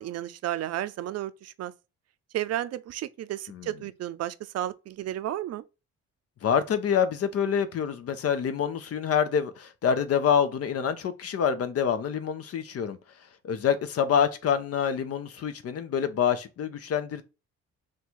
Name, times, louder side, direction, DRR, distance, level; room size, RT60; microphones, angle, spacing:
voice 1, 0.0-1.7 2.3-5.6, right 12 dB, 55° right, 0.5 m, -33 dB
voice 2, 6.4-13.0 13.4-17.2, left 7 dB, 55° left, 0.6 m, -26 dB
3.7 x 2.3 x 4.4 m
cardioid pair, 90°, 30 cm